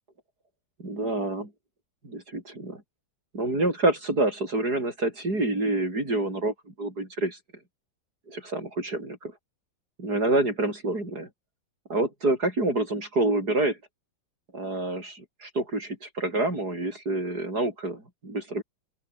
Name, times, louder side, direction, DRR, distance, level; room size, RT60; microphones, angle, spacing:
voice 1, 0.8-1.5 2.0-2.8 3.3-7.4 8.3-9.3 10.0-11.3 11.9-13.8 14.5-18.6, right 2 dB, 55° right, 8.7 m, -27 dB
open air
omnidirectional pair, 2.0 m